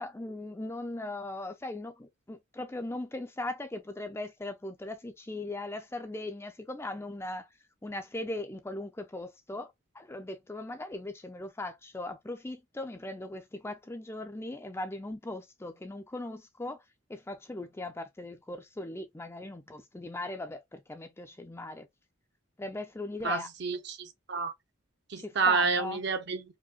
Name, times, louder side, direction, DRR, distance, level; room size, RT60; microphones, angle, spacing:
voice 1, 0.0-7.5 7.8-16.8 17.1-21.9 22.6-23.5 25.2-26.0, left 2 dB, 10° left, 0.4 m, -39 dB
voice 2, 23.2-24.5 25.1-26.4, right 4 dB, 55° right, 0.7 m, -29 dB
4.9 x 2.1 x 2.4 m
head